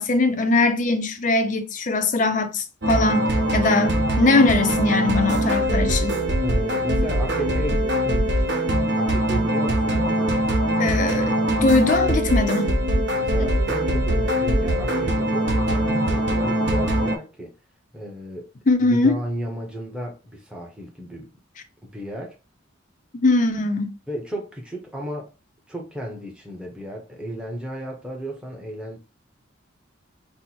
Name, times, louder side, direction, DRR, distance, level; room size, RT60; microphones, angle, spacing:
voice 1, 0.0-3.3 3.5-6.2 10.8-12.7 18.7-19.2 23.2-23.9, left 3 dB, 40° left, 0.5 m, -21 dB
sound 1, 2.8-17.2, right 1 dB, 55° right, 0.8 m, -22 dB
voice 2, 6.4-8.5 8.9-10.6 13.2-17.5 17.9-18.5 18.8-21.3 21.8-22.4 24.1-25.3 25.7-29.0, equal, 5° right, 0.8 m, -34 dB
4.4 x 2.1 x 4.1 m
head